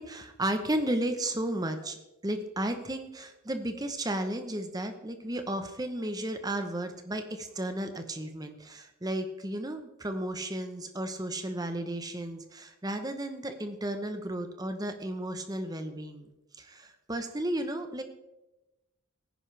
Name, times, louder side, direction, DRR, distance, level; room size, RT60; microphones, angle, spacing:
voice 1, 0.0-2.0 2.2-16.3 16.6-18.0, right 1 dB, 15° right, 7 dB, 0.9 m, -33 dB
17.0 x 10.0 x 3.4 m, 0.98 s
head